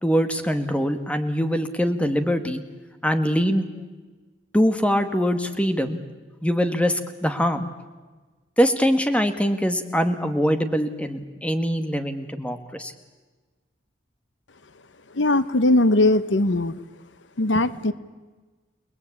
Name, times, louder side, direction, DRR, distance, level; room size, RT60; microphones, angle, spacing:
voice 1, 0.0-2.6 3.0-3.6 4.5-6.0 6.4-7.7 8.6-12.9, equal, 5° left, 8 dB, 1.7 m, -23 dB
voice 2, 15.1-16.8 17.4-17.9, left 2 dB, 75° left, 14 dB, 1.0 m, -20 dB
29.5 x 20.5 x 8.5 m, 1.3 s
head